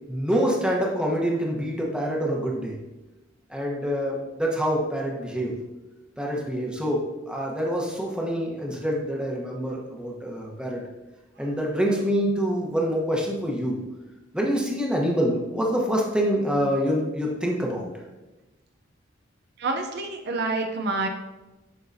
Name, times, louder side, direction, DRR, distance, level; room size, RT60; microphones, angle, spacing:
voice 1, 0.1-2.7 3.5-5.5 6.2-10.8 11.4-13.8 14.3-17.9, equal, 5° right, -2 dB, 1.0 m, -26 dB
voice 2, 19.6-21.1, right 3 dB, 60° right, 4 dB, 0.6 m, -27 dB
10.5 x 3.8 x 2.7 m, 1.1 s
head